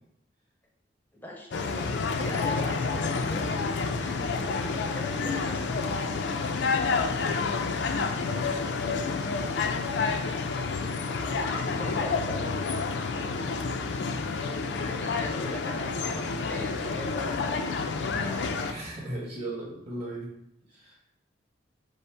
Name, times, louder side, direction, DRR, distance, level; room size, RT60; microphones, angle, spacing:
voice 1, 1.1-3.5 3.9-6.1 11.1-12.5 14.7-17.6 18.1-18.8, equal, 10° left, 0 dB, 0.6 m, -41 dB
sound 1, 1.5-18.7, left 4 dB, 70° left, 0.4 m, -29 dB
voice 2, 4.3-5.3 8.5-9.1 13.1-14.4 18.7-20.3 20.7-21.0, right 1 dB, 30° right, -4 dB, 1.4 m, -40 dB
5.4 x 2.1 x 4.4 m, 0.76 s
head